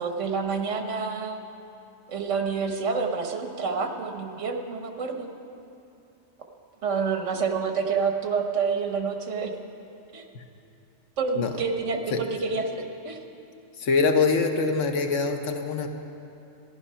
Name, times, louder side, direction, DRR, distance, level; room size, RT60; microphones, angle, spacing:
voice 1, 0.0-1.4 2.1-5.3 6.8-9.5 10.1-10.3 11.2-13.2, right 5 dB, 75° right, 5 dB, 1.4 m, -28 dB
voice 2, 13.8-15.9, left 4 dB, 75° left, 5 dB, 1.2 m, -24 dB
14.5 x 11.0 x 5.6 m, 2.7 s
omnidirectional pair, 1.3 m